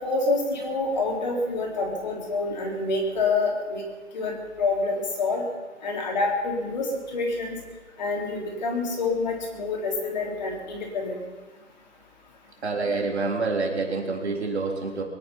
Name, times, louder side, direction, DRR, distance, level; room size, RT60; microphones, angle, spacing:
voice 1, 0.0-3.8 4.1-5.4 5.8-7.6 8.0-11.2, left 3 dB, 35° left, -1 dB, 3.6 m, -27 dB
voice 2, 12.6-15.0, right 3 dB, 55° right, 1 dB, 3.8 m, -27 dB
23.5 x 10.5 x 5.6 m, 1.3 s
figure-of-eight pair, 160°, 39 cm